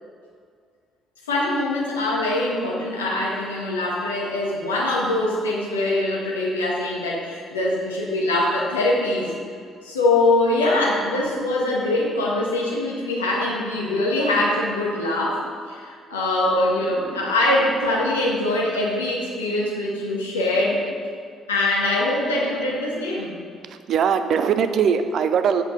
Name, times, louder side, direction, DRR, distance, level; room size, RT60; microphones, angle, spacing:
voice 1, 1.3-9.3 9.8-15.4 15.7-20.8 21.5-23.4, left 2 dB, 80° left, -4 dB, 1.6 m, -23 dB
voice 2, 23.9-25.6, right 7 dB, 50° right, 9 dB, 0.6 m, -21 dB
8.3 x 8.0 x 5.2 m, 2.2 s
figure-of-eight pair, 45°, 0 cm